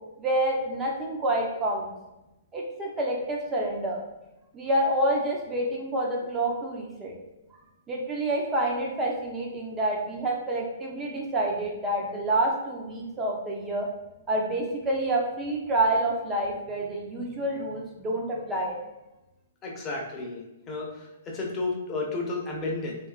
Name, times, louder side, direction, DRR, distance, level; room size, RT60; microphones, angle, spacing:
voice 1, 0.2-1.9 2.5-4.0 4.5-7.1 7.9-13.9 14.3-18.8, right 1 dB, 20° right, -1 dB, 0.5 m, -28 dB
voice 2, 19.6-23.0, left 3 dB, 25° left, -1 dB, 0.6 m, -32 dB
2.7 x 2.3 x 2.3 m, 0.96 s
hypercardioid pair, 135°, 0 cm